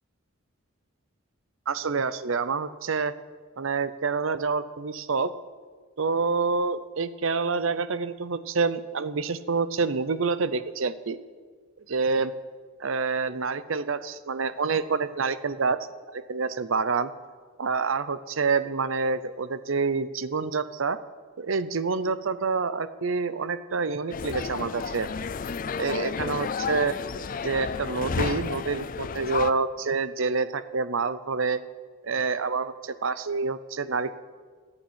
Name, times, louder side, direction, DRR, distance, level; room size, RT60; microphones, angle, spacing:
voice 1, 1.7-3.1 3.6-5.3 6.0-11.2 11.9-12.3 12.8-15.8 16.1-17.1 17.6-21.0 21.4-25.1 25.8-27.0 27.4-31.6 32.0-34.2, right 4 dB, 70° right, 14 dB, 0.7 m, -27 dB
sound 1, 24.1-29.5, left 5 dB, 40° left, 0.4 m, -31 dB
14.5 x 8.9 x 8.1 m, 1.5 s
head